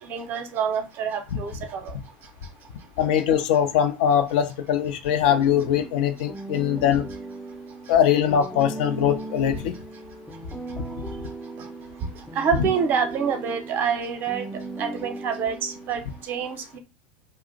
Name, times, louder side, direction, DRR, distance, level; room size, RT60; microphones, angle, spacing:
voice 1, 0.0-2.0 11.6-11.7 12.1-14.5 14.8-16.8, right 6 dB, 40° right, 0.7 m, -27 dB
voice 2, 3.0-7.0 7.9-9.7, left 9 dB, 60° left, 0.5 m, -21 dB
sound 1, 5.3-16.2, right 2 dB, ahead, 0.4 m, -38 dB
2.4 x 2.0 x 3.7 m
hypercardioid pair, 85°, 5 cm